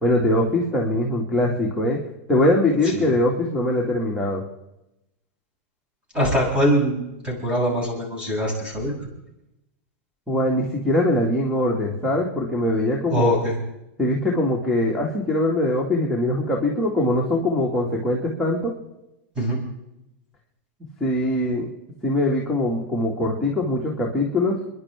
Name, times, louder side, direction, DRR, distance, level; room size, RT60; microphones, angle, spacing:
voice 1, 0.0-2.0 2.3-4.4 10.3-13.4 14.0-18.7 21.0-21.7 22.0-24.6, left 1 dB, ahead, -5 dB, 2.4 m, -22 dB
voice 2, 6.1-9.1 13.1-13.6 19.4-19.6, equal, 15° right, -2 dB, 6.9 m, -23 dB
29.0 x 11.0 x 3.7 m, 0.89 s
supercardioid pair, 150°, 7 cm